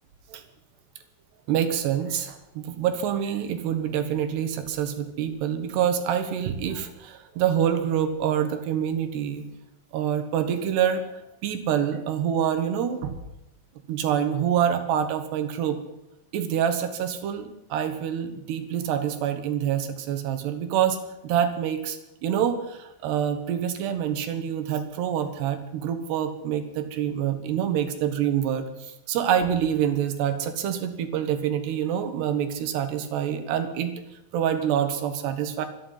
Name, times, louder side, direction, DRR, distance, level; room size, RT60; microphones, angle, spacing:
voice 1, 1.5-9.4 9.9-13.1 13.9-15.8 16.3-21.0 21.2-33.9 34.3-35.7, right 9 dB, 90° right, 8 dB, 3.7 m, -26 dB
24.5 x 10.5 x 5.7 m, 0.90 s
omnidirectional pair, 4.7 m